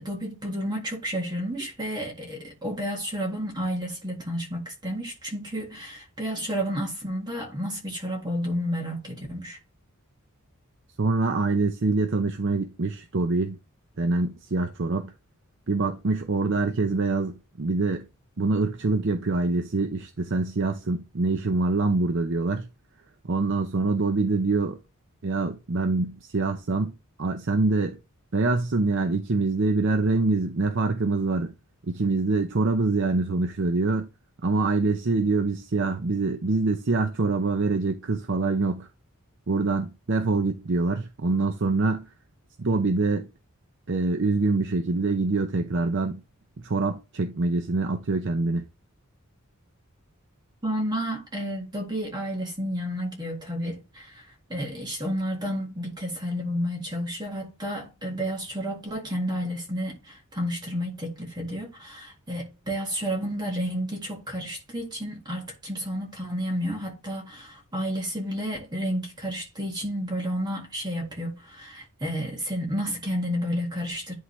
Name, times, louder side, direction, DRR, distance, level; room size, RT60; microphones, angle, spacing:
voice 1, 0.0-9.6 50.6-74.1, equal, 20° right, 1.8 m, -31 dB
voice 2, 11.0-13.6 14.0-15.1 15.7-18.1 18.4-22.7 23.3-24.8 25.2-26.9 27.2-28.0 28.3-31.5 31.9-34.1 34.4-38.9 39.5-42.1 42.6-43.3 43.9-46.2 46.6-48.6, right 3 dB, 55° right, 0.7 m, -25 dB
11.0 x 3.8 x 3.2 m
head